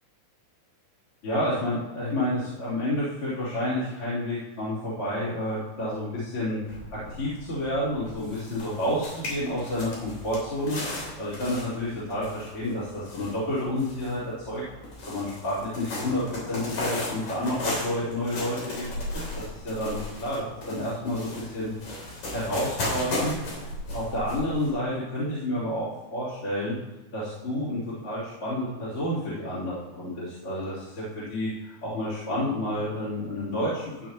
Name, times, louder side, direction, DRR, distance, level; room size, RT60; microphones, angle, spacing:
voice 1, 1.2-6.6 6.9-14.6 15.1-23.7 23.9-26.8 27.1-34.1, left 1 dB, 45° left, -11 dB, 4.5 m, -30 dB
sound 1, 6.3-6.4 6.7-24.7, left 2 dB, 70° left, 4.6 m, -36 dB
14.5 x 9.3 x 3.0 m, 1.1 s
omnidirectional pair, 3.5 m